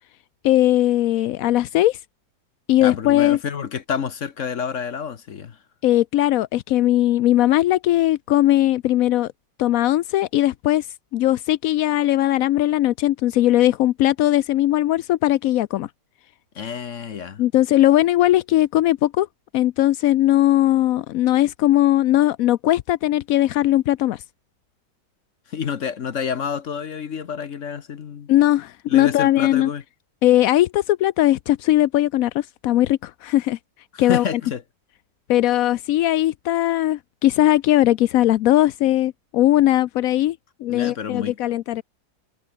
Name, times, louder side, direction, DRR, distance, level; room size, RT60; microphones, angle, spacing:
voice 1, 0.4-2.0 2.7-3.4 5.8-9.3 9.6-10.9 11.1-15.9 17.4-19.3 19.5-24.2 28.3-29.7 30.2-33.6 34.0-34.2 35.3-40.4 40.6-41.8, left 14 dB, 75° left, 0.8 m, -19 dB
voice 2, 2.8-5.6 16.5-17.4 25.5-28.3 28.9-29.8 33.9-34.6 40.7-41.4, left 7 dB, 50° left, 1.2 m, -28 dB
omnidirectional pair, 2.0 m